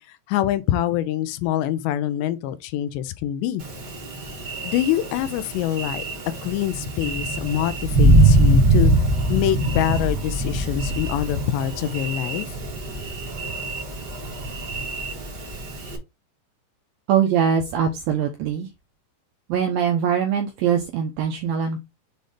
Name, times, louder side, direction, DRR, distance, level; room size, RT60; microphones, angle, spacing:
voice 1, 0.0-3.6 4.6-6.0 6.4-8.9 9.3-12.6, left 12 dB, 80° left, 2.7 m, -25 dB
Thunder, 3.6-16.0, right 1 dB, 65° right, 1.0 m, -23 dB
voice 2, 17.1-18.7 19.5-21.8, right 8 dB, 85° right, 2.1 m, -22 dB
7.7 x 2.7 x 5.0 m
omnidirectional pair, 5.2 m